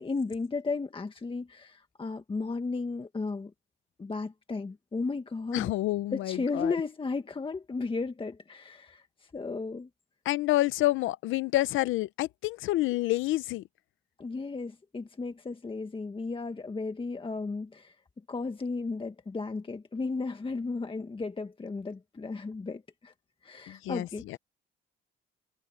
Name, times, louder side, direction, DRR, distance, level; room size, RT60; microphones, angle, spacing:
voice 1, 0.0-3.5 4.0-5.7 6.1-9.9 14.2-17.9 18.3-23.1 23.4-24.4, left 4 dB, 25° left, 1.6 m, -34 dB
voice 2, 5.5-6.8 10.2-13.6 23.7-24.4, left 16 dB, 90° left, 0.7 m, -28 dB
cardioid pair, 90°, 20 cm